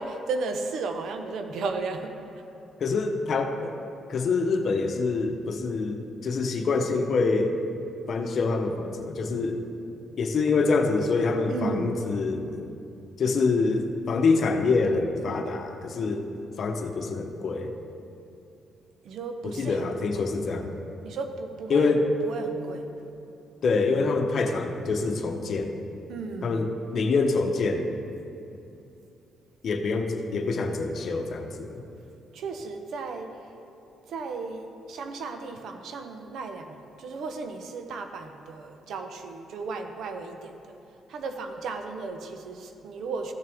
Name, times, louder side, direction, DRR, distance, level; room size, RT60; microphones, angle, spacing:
voice 1, 0.0-2.2 11.5-11.9 19.0-19.8 20.1-20.2 21.0-22.9 26.1-26.7 32.3-33.3 34.1-40.8 41.1-43.3, right 4 dB, 75° right, 6 dB, 0.8 m, -35 dB
voice 2, 2.8-3.8 4.1-7.5 8.1-9.6 10.2-12.7 13.2-16.2 16.6-17.7 19.4-20.7 21.7-22.0 23.6-25.7 26.4-27.9 29.6-31.8, left 4 dB, 55° left, 4 dB, 0.9 m, -26 dB
15.0 x 6.6 x 3.5 m, 2.7 s
cardioid pair, 90°, 0 cm